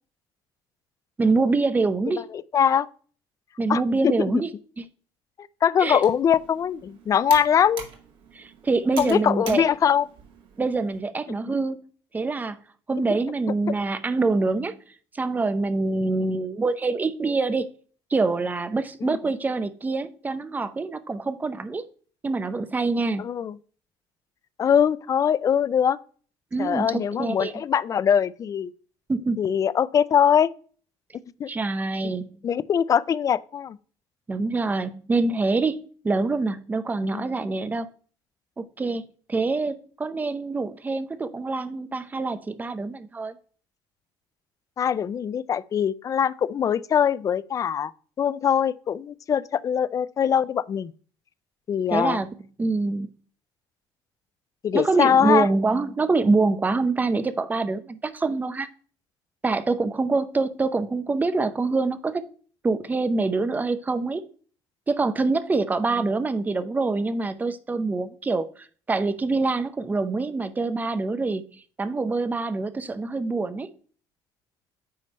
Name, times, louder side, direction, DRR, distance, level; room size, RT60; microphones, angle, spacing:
voice 1, 1.2-2.2 3.6-4.5 4.8-4.9 5.8-6.0 8.3-9.7 10.6-11.8 12.1-12.6 12.9-14.8 15.1-17.7 18.1-21.8 22.2-23.3 26.5-27.5 29.1-29.4 31.5-32.4 34.3-37.9 38.6-43.3 51.9-52.3 52.6-53.1 54.7-58.7 59.4-62.3 62.6-64.3 64.9-73.7, right 3 dB, 15° right, 0.6 m, -25 dB
voice 2, 2.3-2.9 3.7-4.4 5.6-7.8 9.0-10.1 19.0-19.2 23.2-23.5 24.6-26.0 26.6-28.7 29.4-30.5 31.4-31.5 32.0-33.8 37.1-37.2 44.8-47.9 48.2-50.9 51.7-52.2 54.6-55.5, left 8 dB, 35° left, 0.4 m, -22 dB
Computer keyboard, 5.8-11.0, right 6 dB, 55° right, 1.9 m, -43 dB
9.4 x 3.2 x 5.3 m
cardioid pair, 115°, 10 cm